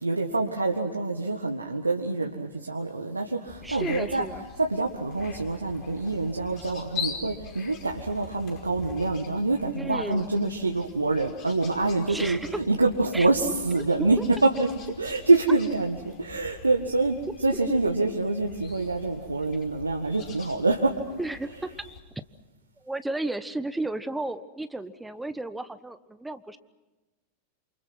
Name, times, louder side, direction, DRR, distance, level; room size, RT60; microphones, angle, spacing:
voice 1, 0.0-4.2 4.6-14.7 15.0-17.2 17.4-20.9, right 3 dB, 80° right, 1 dB, 1.8 m, -26 dB
sound 1, 3.5-22.0, left 6 dB, 35° left, 5.3 m, -43 dB
voice 2, 3.6-4.4 9.7-10.3 12.1-12.6 13.1-13.3 14.0-14.3 17.5-17.6 21.2-21.7 22.8-26.6, right 2 dB, 5° right, 12 dB, 1.2 m, -33 dB
28.5 x 28.0 x 6.2 m, 1.1 s
figure-of-eight pair, 90°, 0 cm